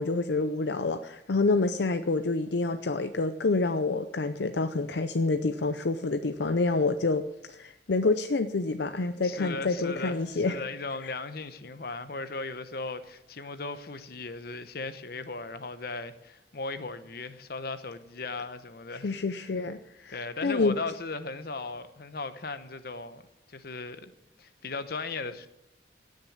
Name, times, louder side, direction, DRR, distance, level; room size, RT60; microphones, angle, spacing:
voice 1, 0.0-10.6 11.0-11.1 18.9-20.8, left 3 dB, 75° left, 0.6 m, -28 dB
voice 2, 9.2-19.1 20.1-24.1 24.4-25.5, left 3 dB, 55° left, 1.0 m, -37 dB
17.5 x 6.5 x 8.5 m
head